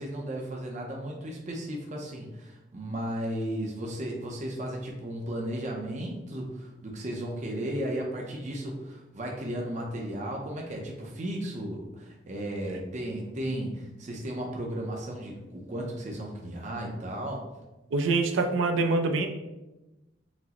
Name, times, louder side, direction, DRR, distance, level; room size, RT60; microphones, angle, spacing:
voice 1, 0.0-17.4, right 1 dB, 40° right, 0 dB, 0.5 m, -35 dB
voice 2, 17.9-19.3, right 3 dB, 85° right, 5 dB, 0.4 m, -25 dB
5.9 x 2.0 x 2.8 m, 1.0 s
head